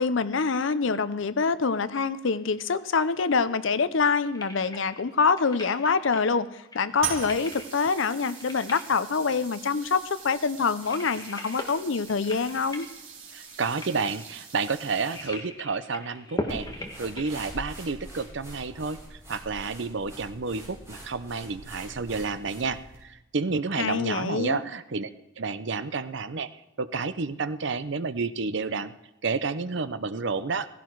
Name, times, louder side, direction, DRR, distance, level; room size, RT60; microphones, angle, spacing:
voice 1, 0.0-6.5 6.7-12.9 23.8-24.6, left 5 dB, 65° left, 14 dB, 0.6 m, -25 dB
sound 1, 1.7-18.3, left 1 dB, 20° left, 1.5 m, -41 dB
sound 2, 7.0-15.6, right 7 dB, 75° right, 3.3 m, -41 dB
voice 2, 13.3-25.1 25.4-26.5 26.8-28.9 29.2-30.7, right 4 dB, 60° right, 13 dB, 0.7 m, -30 dB
sound 3, 16.5-23.0, equal, 15° right, 6.6 m, -44 dB
16.5 x 16.0 x 4.7 m, 0.96 s
head